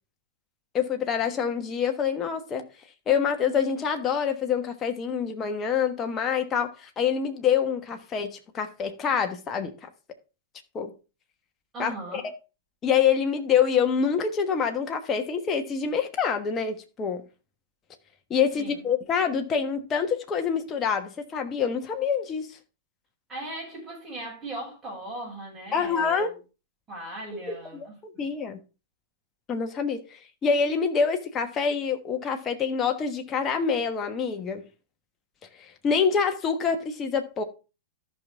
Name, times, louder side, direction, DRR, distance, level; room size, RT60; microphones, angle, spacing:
voice 1, 0.7-2.7 3.1-9.7 10.7-10.9 11.8-12.2 12.8-17.2 18.3-22.5 25.7-26.3 27.3-28.6 29.5-34.6 35.6-37.4, left 6 dB, 25° left, 1.3 m, -26 dB
voice 2, 11.7-12.2 18.6-18.8 23.3-26.3 26.9-28.3, right 1 dB, 20° right, 6.3 m, -38 dB
14.0 x 5.9 x 3.5 m
figure-of-eight pair, 100°, 0 cm